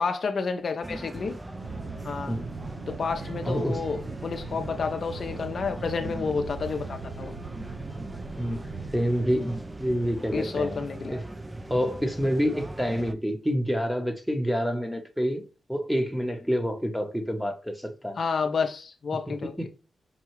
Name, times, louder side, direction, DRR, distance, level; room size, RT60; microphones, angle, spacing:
voice 1, 0.0-1.4 2.0-2.4 2.9-7.4 10.3-11.1 18.2-19.7, left 5 dB, 55° left, 0.5 m, -30 dB
sound 1, 0.8-13.1, right 1 dB, 15° right, 0.4 m, -40 dB
Aircraft, 1.5-11.0, right 4 dB, 80° right, 0.5 m, -41 dB
voice 2, 3.4-3.8 8.4-8.6 8.9-11.2 11.7-15.4 15.7-18.2 19.3-19.7, equal, ahead, 0.8 m, -28 dB
5.4 x 2.3 x 3.0 m
cardioid pair, 85°, 0 cm